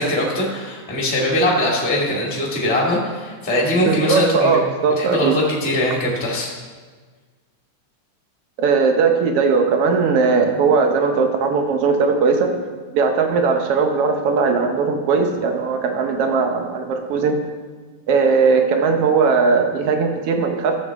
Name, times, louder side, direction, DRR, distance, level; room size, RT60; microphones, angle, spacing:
voice 1, 0.0-4.6 5.0-6.5, left 1 dB, 5° left, -3 dB, 1.4 m, -21 dB
voice 2, 3.8-5.4 8.6-12.5 12.9-17.4 18.1-20.8, right 4 dB, 70° right, 5 dB, 1.5 m, -18 dB
12.5 x 7.7 x 3.6 m, 1.4 s
omnidirectional pair, 3.5 m